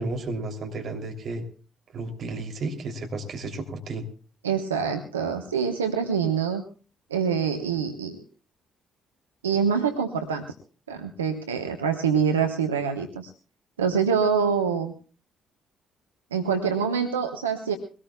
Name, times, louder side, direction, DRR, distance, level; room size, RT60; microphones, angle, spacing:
voice 1, 0.0-1.4 1.9-4.0, right 2 dB, 55° right, 4 dB, 2.9 m, -32 dB
voice 2, 4.4-6.6 7.1-8.2 9.4-10.4 10.9-13.3 13.8-14.9 16.3-17.8, right 6 dB, 85° right, 5 dB, 1.0 m, -25 dB
23.0 x 18.5 x 2.3 m, 0.36 s
figure-of-eight pair, 45°, 0 cm